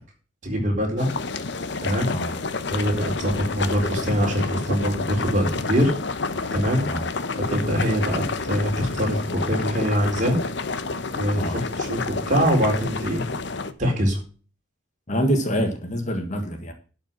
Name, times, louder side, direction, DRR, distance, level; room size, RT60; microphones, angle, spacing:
voice 1, 0.4-1.1 1.8-2.1 2.7-5.9 6.5-6.8 7.5-10.4 11.1-13.2 13.8-14.2, equal, 40° right, 4.2 m, -23 dB
sound 1, 1.0-13.7, left 3 dB, 60° left, 0.9 m, -29 dB
voice 2, 15.1-16.7, equal, 35° left, 1.7 m, -26 dB
12.0 x 5.8 x 6.2 m
head